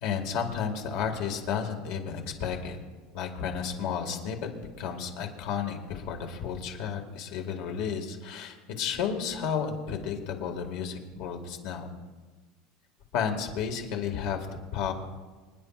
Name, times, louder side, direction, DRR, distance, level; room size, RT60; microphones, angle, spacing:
voice 1, 0.0-2.8 3.1-4.5 4.8-11.9 13.1-14.9, left 7 dB, 55° left, 3 dB, 1.9 m, -32 dB
27.0 x 10.5 x 2.4 m, 1.3 s
supercardioid pair, 165°, 0 cm